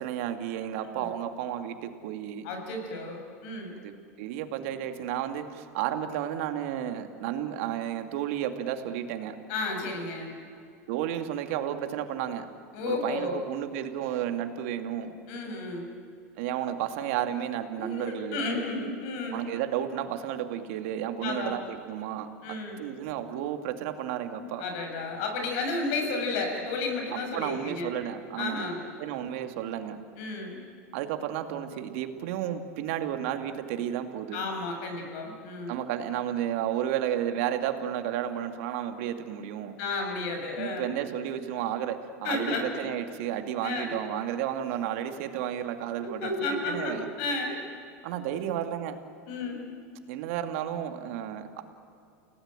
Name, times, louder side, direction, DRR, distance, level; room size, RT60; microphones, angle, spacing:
voice 1, 0.0-2.5 3.8-9.4 10.9-12.5 12.9-15.1 16.4-18.4 19.3-22.3 22.8-24.6 27.1-28.7 29.0-30.0 30.9-34.4 35.7-39.8 40.6-47.1 48.0-49.0 50.1-51.6, right 10 dB, 70° right, 7 dB, 2.4 m, -32 dB
voice 2, 2.4-3.7 9.5-10.3 12.7-13.4 15.3-15.9 17.7-19.4 21.2-21.6 22.4-22.8 24.4-27.9 28.4-28.9 30.2-30.6 34.3-35.7 39.8-40.9 42.2-42.9 43.6-44.0 46.0-47.6 49.3-49.6, left 3 dB, 65° left, 3 dB, 7.2 m, -32 dB
29.5 x 18.0 x 9.1 m, 2.5 s
supercardioid pair, 110°, 7 cm